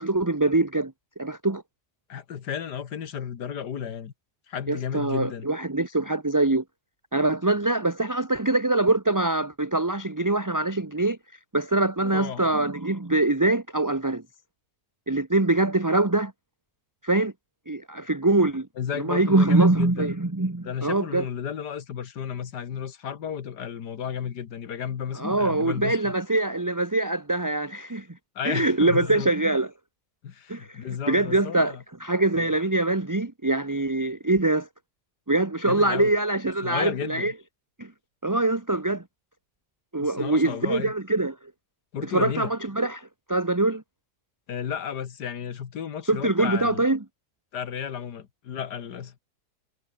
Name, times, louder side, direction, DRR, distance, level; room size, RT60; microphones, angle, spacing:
voice 1, 0.0-1.6 4.7-6.6 7.1-11.2 11.5-14.2 15.1-16.3 17.0-17.3 17.7-18.7 18.9-21.3 25.1-28.1 28.4-29.7 30.5-34.7 35.3-37.3 37.8-37.9 38.2-39.0 39.9-41.4 42.0-43.8 46.1-47.0, right 2 dB, 15° right, 1.1 m, -24 dB
voice 2, 2.1-4.1 4.5-5.5 12.0-12.5 18.8-20.1 20.6-26.1 28.4-29.3 30.2-31.8 32.4-32.5 35.7-36.1 36.6-37.3 40.0-40.9 41.9-42.5 44.5-46.9 47.5-49.1, left 8 dB, 90° left, 2.0 m, -33 dB
omnidirectional pair, 1.7 m